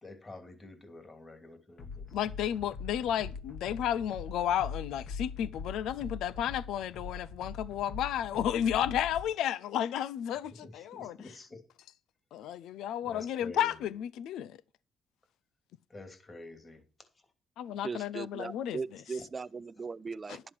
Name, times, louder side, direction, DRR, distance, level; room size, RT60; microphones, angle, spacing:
voice 1, 0.0-2.0 10.6-11.6 13.0-13.7 15.9-16.8, left 2 dB, 30° left, 2.9 m, -48 dB
sound 1, 1.8-9.3, left 5 dB, 60° left, 2.2 m, -42 dB
voice 2, 2.1-11.4 12.3-14.6 17.6-18.8 20.3-20.4, left 10 dB, 85° left, 0.5 m, -32 dB
voice 3, 17.7-20.4, right 4 dB, 30° right, 0.6 m, -39 dB
11.5 x 7.7 x 6.1 m
cardioid pair, 90°, 0 cm